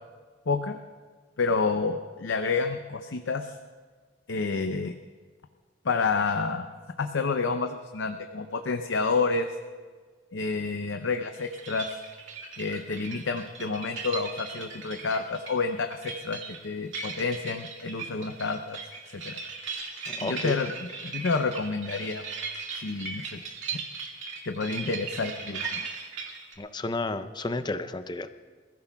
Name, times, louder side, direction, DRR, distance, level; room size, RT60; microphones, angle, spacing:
voice 1, 0.5-0.8 1.4-3.5 4.3-4.9 5.8-6.7 7.0-9.5 10.3-11.9 12.6-18.8 19.2-19.4 20.2-20.7 21.0-22.2 22.7-23.4 23.7-23.8 24.5-26.1, left 4 dB, 85° left, 6 dB, 0.6 m, -29 dB
sound 1, 11.3-26.5, right 5 dB, 80° right, 2.0 m, -38 dB
voice 2, 20.1-20.6 26.6-28.3, left 2 dB, 25° left, 10 dB, 0.6 m, -32 dB
27.5 x 15.5 x 2.3 m, 1.5 s
head